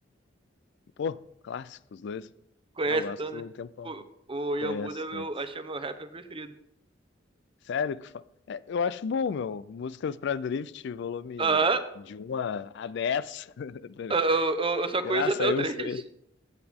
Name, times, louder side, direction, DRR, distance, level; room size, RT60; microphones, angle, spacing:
voice 1, 1.0-2.3 2.9-4.0 4.6-5.3 7.7-11.6 12.1-14.2 15.0-16.0, left 6 dB, 65° left, 0.4 m, -33 dB
voice 2, 2.8-3.4 3.8-4.0 4.3-6.5 11.4-11.8 14.1-15.9, right 3 dB, 30° right, 0.8 m, -28 dB
15.5 x 8.0 x 3.6 m
head